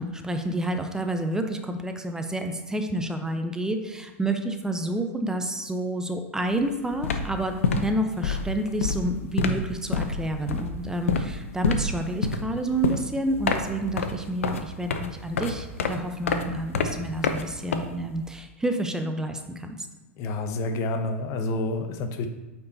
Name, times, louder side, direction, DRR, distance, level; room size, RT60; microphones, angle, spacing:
voice 1, 0.0-19.9, right 1 dB, 10° right, 6 dB, 0.7 m, -29 dB
sound 1, 6.4-6.6 6.9-18.3, left 5 dB, 75° left, 0.7 m, -28 dB
voice 2, 20.2-22.3, left 2 dB, 45° left, 6 dB, 0.9 m, -28 dB
8.5 x 4.6 x 4.1 m, 1.1 s
hypercardioid pair, 90°, 7 cm